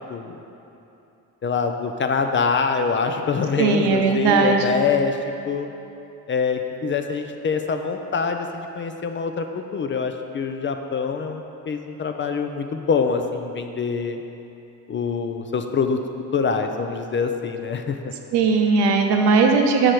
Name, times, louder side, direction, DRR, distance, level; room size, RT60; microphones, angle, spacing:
voice 1, 0.1-0.4 1.4-5.2 5.5-5.7 6.3-14.2 14.9-16.0 16.3-18.1, left 5 dB, 30° left, 6 dB, 0.4 m, -25 dB
voice 2, 3.6-4.7 18.3-19.9, right 4 dB, 75° right, 3 dB, 0.8 m, -18 dB
6.3 x 5.0 x 4.4 m, 2.8 s
supercardioid pair, 75°, 41 cm